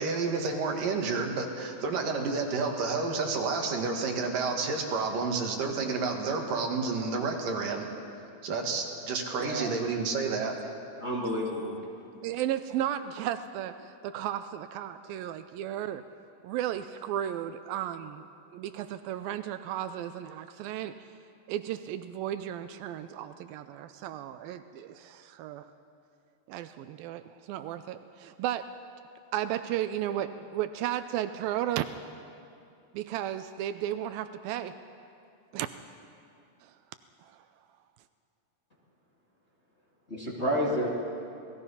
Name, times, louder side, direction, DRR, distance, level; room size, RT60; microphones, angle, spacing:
voice 1, 0.0-7.9 8.4-10.7, right 4 dB, 65° right, 2 dB, 3.5 m, -30 dB
voice 2, 11.0-11.7 40.1-40.9, equal, 20° left, -4 dB, 2.4 m, -30 dB
voice 3, 12.2-16.0 16.4-18.3 18.5-21.1 21.5-25.7 26.5-28.7 29.3-31.9 32.9-34.8 35.5-35.7 36.6-36.7 37.2-37.4, right 11 dB, 80° right, 11 dB, 2.4 m, -34 dB
28.5 x 19.0 x 5.7 m, 2.6 s
omnidirectional pair, 4.2 m